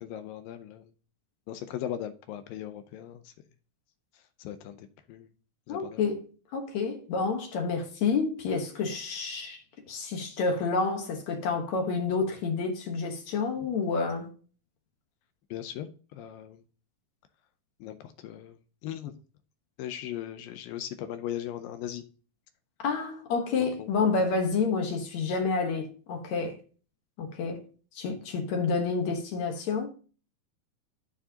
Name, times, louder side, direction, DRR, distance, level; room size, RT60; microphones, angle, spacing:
voice 1, 0.0-0.9 1.5-3.3 4.4-5.3 5.7-6.0 15.5-16.6 17.8-18.6 18.8-19.1 19.8-22.0 23.6-24.1, left 11 dB, 80° left, 2.3 m, -38 dB
voice 2, 5.7-6.3 6.5-9.6 9.9-14.3 22.8-26.6 27.2-27.7 28.0-29.9, left 4 dB, 60° left, 2.1 m, -29 dB
14.0 x 4.7 x 2.8 m
omnidirectional pair, 4.3 m